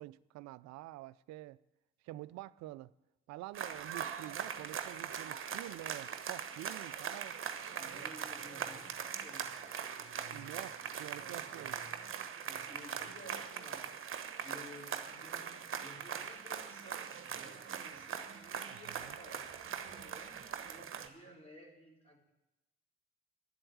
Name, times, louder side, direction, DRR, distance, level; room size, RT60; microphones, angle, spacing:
voice 1, 0.0-1.6 2.0-2.9 3.3-7.4 10.3-11.7 18.7-19.1, right 16 dB, 60° right, 0.5 m, -48 dB
sound 1, 3.5-21.1, right 7 dB, 45° right, 1.1 m, -41 dB
voice 2, 7.8-10.7 11.0-14.0 14.4-22.3, equal, 20° left, 4.3 m, -55 dB
11.0 x 7.7 x 9.2 m
hypercardioid pair, 50°, 30 cm